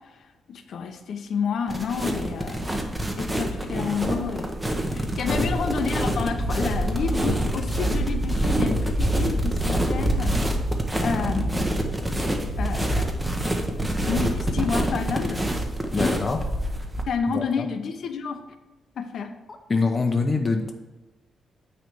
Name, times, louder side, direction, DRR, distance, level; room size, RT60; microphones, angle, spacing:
voice 1, 0.5-2.7 3.2-4.5 4.9-10.3 11.0-11.8 12.6-13.1 14.1-15.4 15.9-16.2 17.1-18.4 19.0-19.4, left 6 dB, 60° left, 8 dB, 0.8 m, -29 dB
sound 1, 1.7-17.0, right 1 dB, 10° right, 0.9 m, -26 dB
voice 2, 5.3-5.6 15.9-16.4 17.3-17.7 19.7-20.7, left 4 dB, 30° left, 3 dB, 0.7 m, -25 dB
9.3 x 3.3 x 6.8 m, 1.1 s
cardioid pair, 130°, 0 cm